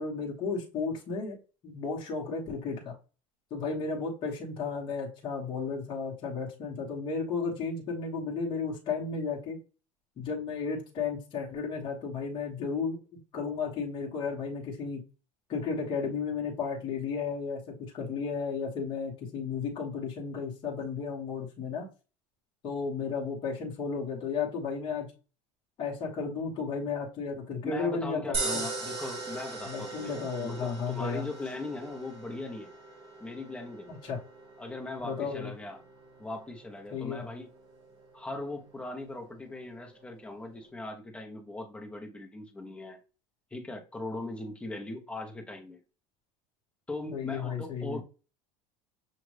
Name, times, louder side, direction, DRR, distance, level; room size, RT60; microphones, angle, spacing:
voice 1, 0.0-1.4 1.6-2.9 3.5-9.6 10.2-13.0 13.3-15.0 15.5-17.6 17.9-21.9 22.6-25.1 25.8-28.6 29.6-31.3 33.9-34.2 35.0-35.5 36.9-37.2 47.1-48.0, left 5 dB, 30° left, 1.2 m, -33 dB
voice 2, 27.6-32.7 33.2-34.0 34.6-35.8 36.2-37.5 38.1-43.0 43.5-45.8 46.9-48.0, left 2 dB, 10° left, 0.9 m, -39 dB
sound 1, 28.3-40.7, right 3 dB, 45° right, 2.4 m, -41 dB
6.3 x 2.5 x 3.2 m
cardioid pair, 155°, 15 cm